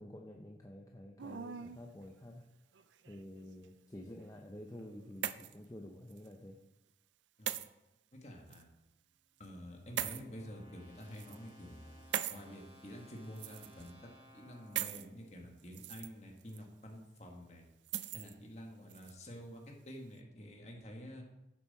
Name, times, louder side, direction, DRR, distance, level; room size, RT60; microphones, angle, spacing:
voice 1, 0.0-2.5 3.1-6.6, left 1 dB, 20° left, 1 dB, 0.6 m, -50 dB
sound 1, 1.2-1.8 2.7-3.4 4.7-5.6 6.1-6.3 7.5-7.7 8.5-8.6 10.0-10.2 11.0-11.4 12.1-12.4 13.4-13.9 14.7-15.0 15.6-16.1 16.5-16.6 17.9-18.3 18.9-19.1, right 10 dB, 90° right, 0.5 m, -40 dB
voice 2, 8.1-8.7 9.4-17.6 18.1-21.2, equal, 40° left, 1 dB, 1.8 m, -49 dB
sound 2, 8.8-16.0, left 1 dB, 35° right, 3.0 m, -61 dB
10.5 x 7.2 x 4.3 m, 0.92 s
head